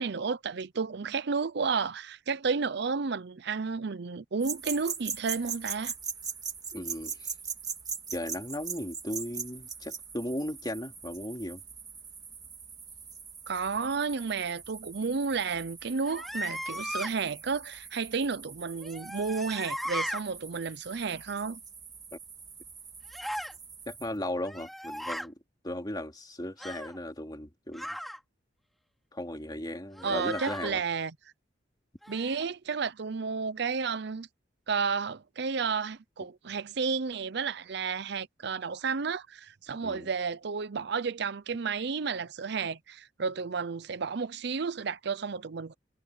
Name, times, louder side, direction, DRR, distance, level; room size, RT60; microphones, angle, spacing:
voice 1, 0.0-5.9 13.5-21.6 30.0-31.1 32.1-34.3 34.7-45.8, right 5 dB, 65° right, 0.6 m, -32 dB
sound 1, 4.4-24.2, right 5 dB, 20° right, 3.0 m, -41 dB
voice 2, 6.7-7.3 8.1-11.6 23.9-25.3 25.6-27.9 29.1-30.8 39.8-40.1, left 1 dB, 20° left, 2.7 m, -36 dB
sound 2, 16.0-17.1 18.8-20.2 23.1-23.5 24.4-25.3 26.6-27.0 27.7-28.2 29.9-30.7 32.0-32.5, equal, ahead, 2.7 m, -37 dB
head